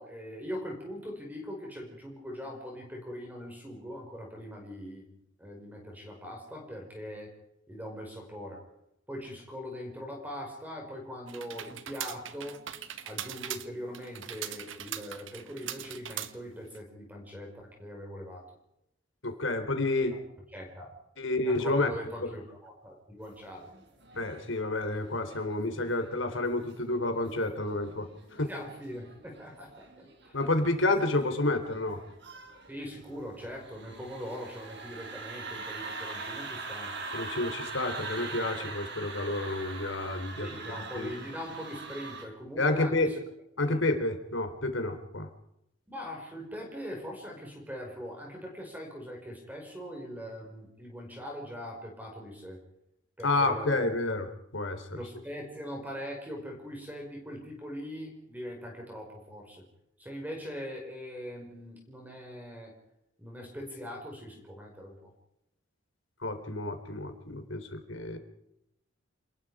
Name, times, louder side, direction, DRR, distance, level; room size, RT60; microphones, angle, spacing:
voice 1, 0.0-7.3 7.7-8.6 9.1-12.6 13.0-18.5 20.1-20.2 20.5-20.9 21.4-23.7 28.5-30.4 32.7-36.9 40.4-43.1 43.6-43.7 45.9-52.6 53.2-53.9 54.9-59.6 60.0-62.7 63.2-64.9, equal, 10° right, 1 dB, 5.2 m, -41 dB
sound 1, 11.3-16.8, right 10 dB, 80° right, 1.5 m, -40 dB
voice 2, 19.2-20.2 21.2-21.9 22.2-22.3 24.2-28.1 28.3-28.5 30.3-32.0 37.1-41.1 42.6-43.1 43.6-45.3 53.2-54.3 54.5-55.0 66.2-68.2, left 2 dB, 80° left, 7 dB, 3.8 m, -30 dB
sound 2, 23.4-42.2, right 3 dB, 60° right, 5.2 m, -43 dB
28.5 x 20.5 x 5.0 m, 0.82 s
head